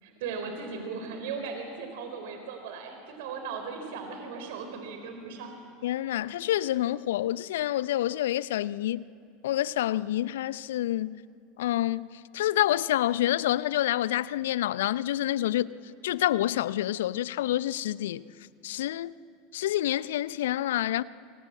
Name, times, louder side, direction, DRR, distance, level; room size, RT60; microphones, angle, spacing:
voice 1, 0.0-5.5, right 5 dB, 60° right, 4.3 m, -37 dB
voice 2, 5.8-9.1 9.4-11.2 11.6-12.1 12.3-15.7 16.0-18.2 18.6-19.1 19.5-21.0, left 13 dB, 65° left, 0.6 m, -27 dB
27.0 x 26.0 x 8.4 m
figure-of-eight pair, 80°, 0 cm